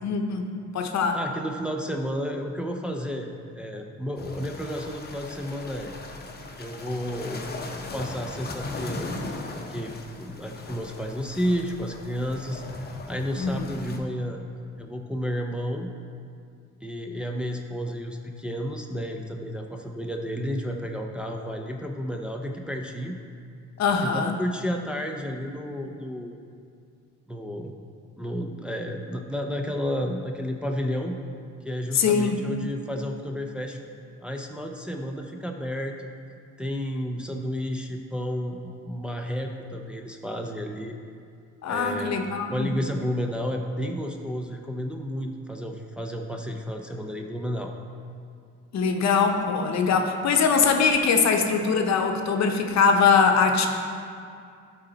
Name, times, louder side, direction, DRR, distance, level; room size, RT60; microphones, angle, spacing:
voice 1, 0.0-1.2 13.4-13.9 23.8-24.4 31.9-32.4 41.6-42.7 48.7-53.7, left 5 dB, 60° left, 4 dB, 0.8 m, -22 dB
voice 2, 1.1-5.9 6.6-7.4 7.9-9.1 9.5-12.6 13.1-14.4 14.8-15.9 16.8-23.2 24.0-26.4 27.3-27.7 28.2-31.2 31.6-33.8 34.2-36.1 36.6-41.0 41.7-42.1 42.4-47.7, equal, 5° right, 1 dB, 0.6 m, -31 dB
sound 1, 4.2-14.0, left 3 dB, 30° left, 0.8 m, -38 dB
12.0 x 4.1 x 4.0 m, 2.3 s
cardioid pair, 90°, 30 cm